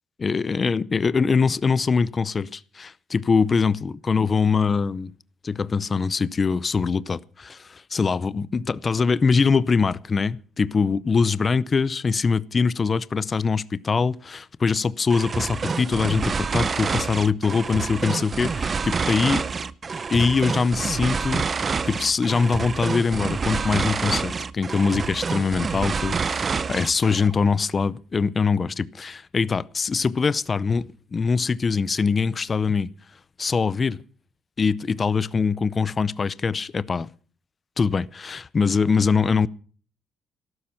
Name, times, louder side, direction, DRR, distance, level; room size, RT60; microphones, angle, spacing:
voice 1, 0.2-5.1 5.4-19.4 20.1-21.5 21.9-32.9 33.4-34.0 34.6-37.1 37.8-39.5, left 5 dB, 35° left, 0.6 m, -23 dB
sound 1, 15.1-27.3, right 5 dB, 40° right, 0.7 m, -27 dB
14.0 x 12.5 x 5.7 m
cardioid pair, 90°, 0 cm